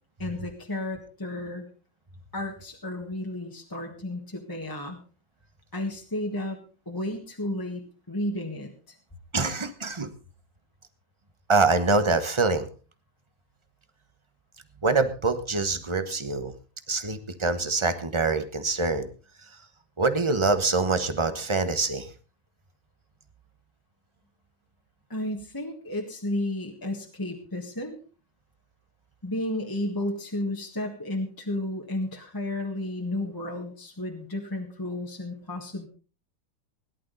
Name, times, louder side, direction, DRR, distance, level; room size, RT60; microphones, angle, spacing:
voice 1, 0.2-1.7 2.3-5.0 5.7-6.6 6.8-9.0 25.1-28.0 29.2-35.9, left 1 dB, 10° left, 1 dB, 1.5 m, -32 dB
voice 2, 9.3-10.1 11.5-12.7 14.8-16.5 16.9-19.1 19.4-19.6 20.0-22.1, right 3 dB, 25° right, 9 dB, 0.7 m, -25 dB
17.5 x 11.5 x 4.0 m, 0.35 s
omnidirectional pair, 2.1 m